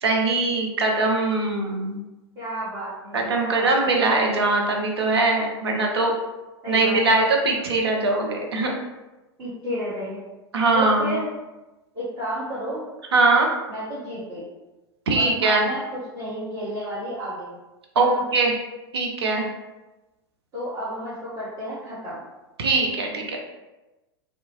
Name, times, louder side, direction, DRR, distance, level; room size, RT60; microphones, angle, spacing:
voice 1, 0.0-2.0 3.1-6.1 6.7-8.7 10.5-11.1 13.1-13.5 15.1-15.7 18.0-18.5 18.9-19.5 22.6-23.4, right 3 dB, 75° right, 1 dB, 0.6 m, -21 dB
voice 2, 2.3-4.0 6.6-7.2 9.4-10.2 10.7-11.3 11.9-12.9 13.7-14.4 15.1-17.5 17.9-18.2 20.5-22.2, equal, 30° right, -12 dB, 1.4 m, -32 dB
2.7 x 2.2 x 2.9 m, 1.1 s
figure-of-eight pair, 90°, 14 cm